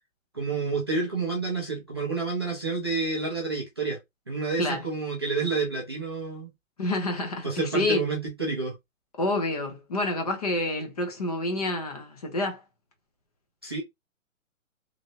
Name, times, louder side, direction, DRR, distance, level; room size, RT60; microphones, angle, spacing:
voice 1, 0.3-4.0 4.3-6.5 7.4-8.7 13.6-13.8, right 4 dB, 20° right, 0.4 m, -29 dB
voice 2, 6.8-8.0 9.2-12.6, left 1 dB, 30° left, 0.5 m, -28 dB
3.0 x 2.5 x 2.7 m
hypercardioid pair, 160°, 41 cm